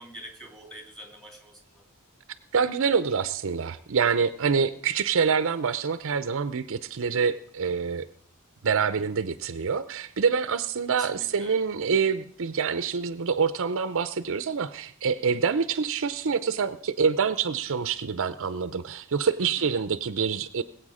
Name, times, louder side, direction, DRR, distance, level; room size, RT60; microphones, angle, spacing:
voice 1, 0.0-1.8 10.9-11.6 19.4-19.8, right 1 dB, ahead, 3 dB, 2.7 m, -45 dB
voice 2, 2.5-8.0 8.6-20.6, right 6 dB, 60° right, 13 dB, 0.6 m, -26 dB
20.5 x 8.1 x 5.0 m, 0.62 s
head